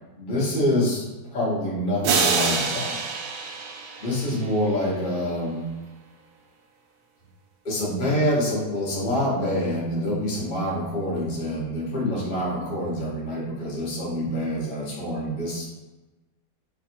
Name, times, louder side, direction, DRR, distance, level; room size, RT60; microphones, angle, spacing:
voice 1, 0.2-3.0 3.5-3.6 4.0-5.6 7.6-15.7, left 1 dB, 35° left, -6 dB, 0.9 m, -26 dB
sound 1, 2.0-4.7, right 5 dB, 90° right, 1.3 m, -26 dB
3.3 x 2.4 x 4.4 m, 1.1 s
omnidirectional pair, 1.9 m